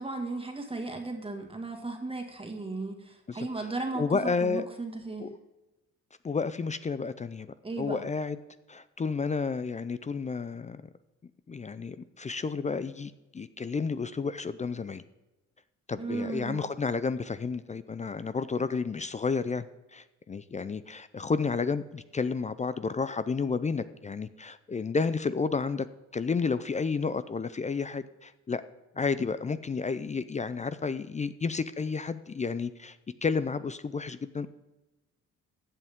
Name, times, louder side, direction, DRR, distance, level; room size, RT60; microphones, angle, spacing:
voice 1, 0.0-5.3 7.6-8.0 16.0-16.6, right 3 dB, 20° right, 3 dB, 1.9 m, -35 dB
voice 2, 3.3-4.7 5.2-5.3 6.2-7.5 7.8-8.4 8.7-10.8 11.5-15.0 15.9-19.7 19.9-25.9 26.1-28.6 29.0-33.0 33.2-34.5, left 4 dB, 25° left, 14 dB, 0.5 m, -31 dB
15.0 x 8.4 x 3.6 m, 1.1 s
cardioid pair, 90°, 30 cm